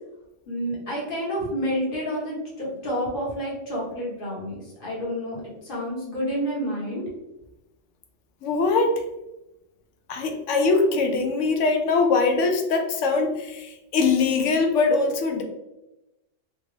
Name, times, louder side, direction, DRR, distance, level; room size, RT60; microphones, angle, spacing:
voice 1, 0.5-7.0, equal, 45° left, -5 dB, 1.4 m, -29 dB
voice 2, 8.4-9.0 10.1-15.4, left 4 dB, 70° left, 5 dB, 0.9 m, -22 dB
3.4 x 2.6 x 3.2 m, 0.96 s
omnidirectional pair, 1.3 m